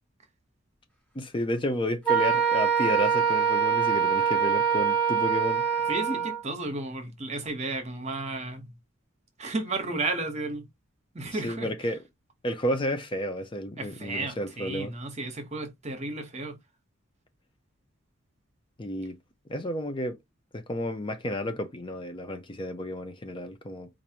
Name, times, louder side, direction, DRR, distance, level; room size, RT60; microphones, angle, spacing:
voice 1, 1.1-5.8 11.3-12.0 12.4-14.9 18.8-19.2 19.5-20.2 20.5-23.9, left 1 dB, 25° left, 0.5 m, -31 dB
Wind instrument woodwind instrument, 2.1-6.4, right 7 dB, 5° left, 1.2 m, -24 dB
voice 2, 5.9-8.7 9.4-10.6 11.1-11.7 13.8-16.5, right 2 dB, 35° right, 1.0 m, -33 dB
4.6 x 2.6 x 2.8 m
head